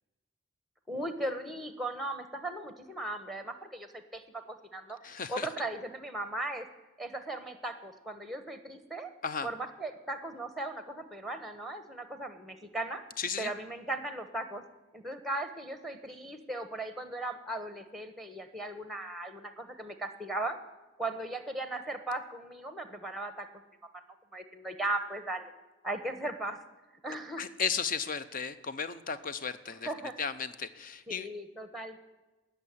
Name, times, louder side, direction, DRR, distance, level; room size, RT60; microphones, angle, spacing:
voice 1, 0.9-5.0 5.3-6.7 7.0-9.1 9.4-13.0 13.4-14.6 14.9-20.6 21.0-23.5 24.3-25.5 25.8-26.6 27.0-27.4 29.8-30.1 31.1-32.0, right 2 dB, ahead, 9 dB, 1.2 m, -37 dB
voice 2, 5.0-5.5 9.2-9.5 13.2-13.5 27.4-29.9 30.2-31.3, left 6 dB, 45° left, 12 dB, 0.7 m, -34 dB
18.5 x 6.8 x 9.9 m, 1.1 s
head